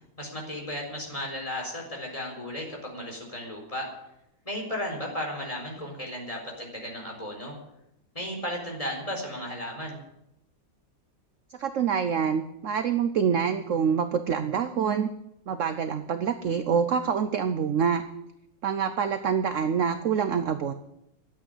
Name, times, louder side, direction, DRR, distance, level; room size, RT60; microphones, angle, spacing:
voice 1, 0.2-3.9 4.4-7.6 8.1-10.0, left 1 dB, 20° left, 0 dB, 4.3 m, -34 dB
voice 2, 11.6-15.1 15.5-18.0 18.6-20.7, right 7 dB, 55° right, 9 dB, 0.9 m, -26 dB
13.0 x 8.7 x 9.6 m, 0.81 s
omnidirectional pair, 1.9 m